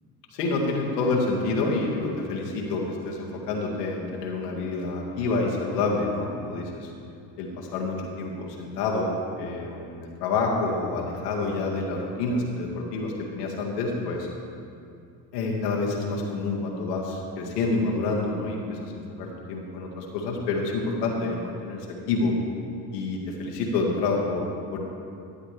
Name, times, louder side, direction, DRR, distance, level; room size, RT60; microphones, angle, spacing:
voice 1, 0.3-6.9 7.4-14.3 15.3-22.3 22.9-24.8, left 3 dB, 85° left, -2 dB, 1.9 m, -28 dB
12.0 x 9.8 x 3.4 m, 2.4 s
hypercardioid pair, 75°, 46 cm